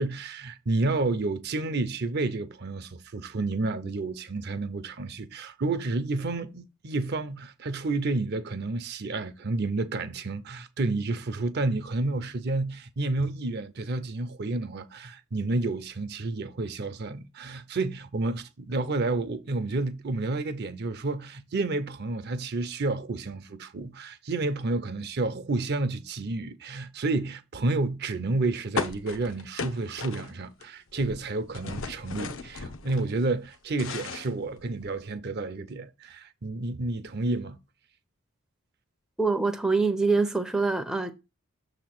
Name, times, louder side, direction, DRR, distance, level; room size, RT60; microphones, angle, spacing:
voice 1, 0.0-37.6, right 2 dB, 50° right, 0.6 m, -30 dB
sound 1, 28.8-30.6 30.9-33.0 33.4-35.0, left 4 dB, 65° left, 0.6 m, -36 dB
voice 2, 39.2-41.1, right 3 dB, 5° right, 0.5 m, -25 dB
6.7 x 2.9 x 5.8 m
head